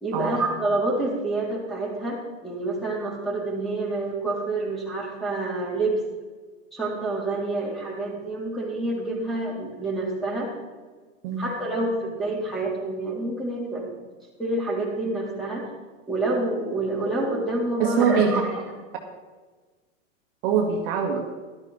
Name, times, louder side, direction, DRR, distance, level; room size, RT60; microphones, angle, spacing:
voice 1, 0.0-6.0 6.7-10.5 11.4-13.9 14.4-15.7 16.1-18.5, right 2 dB, ahead, -4 dB, 3.4 m, -27 dB
voice 2, 17.8-18.3 20.4-21.3, right 7 dB, 50° right, 2 dB, 1.7 m, -23 dB
13.0 x 12.5 x 4.1 m, 1.4 s
supercardioid pair, 145°, 39 cm